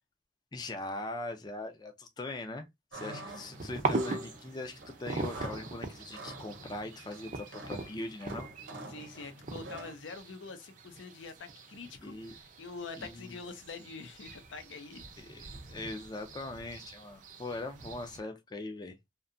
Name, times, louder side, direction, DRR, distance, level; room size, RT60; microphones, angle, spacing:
voice 1, 0.5-2.7 2.9-8.5 12.0-12.4 13.0-13.4 15.2-19.0, left 2 dB, 20° left, 0.4 m, -41 dB
sound 1, 2.9-9.9, right 2 dB, 90° right, 0.8 m, -47 dB
sound 2, 3.3-18.2, right 3 dB, 45° right, 0.5 m, -41 dB
voice 2, 8.9-15.0, left 4 dB, 90° left, 0.5 m, -45 dB
2.7 x 2.2 x 2.5 m
head